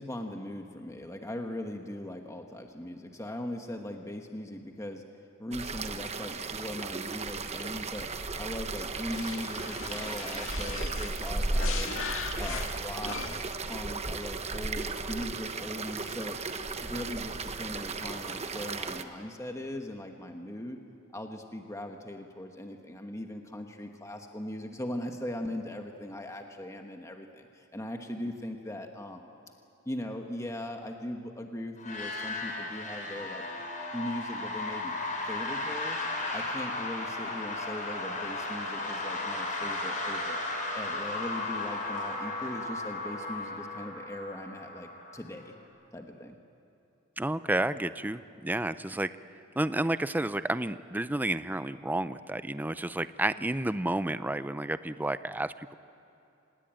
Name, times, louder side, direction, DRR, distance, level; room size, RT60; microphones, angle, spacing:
voice 1, 0.0-5.0 5.4-11.9 12.4-16.4 16.8-20.8 21.1-29.3 29.8-33.4 33.9-34.9 35.3-36.0 36.3-40.4 40.7-45.5 45.9-46.4, left 1 dB, 15° left, 4 dB, 1.3 m, -39 dB
sound 1, 5.5-19.0, right 3 dB, 30° right, 1.0 m, -35 dB
sound 2, 9.0-13.6, left 6 dB, 75° left, 1.8 m, -39 dB
sound 3, 31.8-45.5, left 2 dB, 40° left, 4.2 m, -35 dB
voice 2, 47.2-49.1 49.6-55.7, right 1 dB, 10° right, 13 dB, 0.5 m, -31 dB
26.5 x 19.5 x 9.0 m, 2.8 s
head